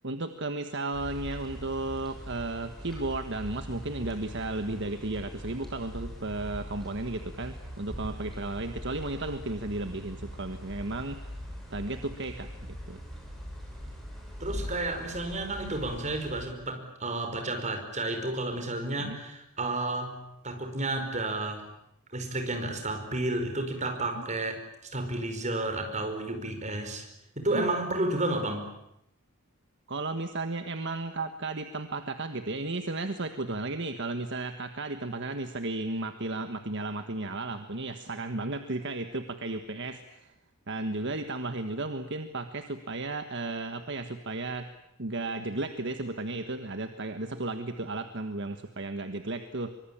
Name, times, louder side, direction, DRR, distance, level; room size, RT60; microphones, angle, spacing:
voice 1, 0.0-11.3 11.7-13.0 19.0-19.2 24.2-24.3 27.5-27.7 29.9-40.3 40.7-44.7 45.0-49.7, right 2 dB, 55° right, 7 dB, 1.5 m, -34 dB
sound 1, 0.9-16.5, equal, ahead, 7.6 m, -42 dB
voice 2, 14.4-20.2 20.4-21.7 22.1-24.6 24.9-27.1 27.3-28.7, right 2 dB, 35° right, 5 dB, 5.2 m, -31 dB
24.5 x 24.5 x 8.9 m, 0.80 s
head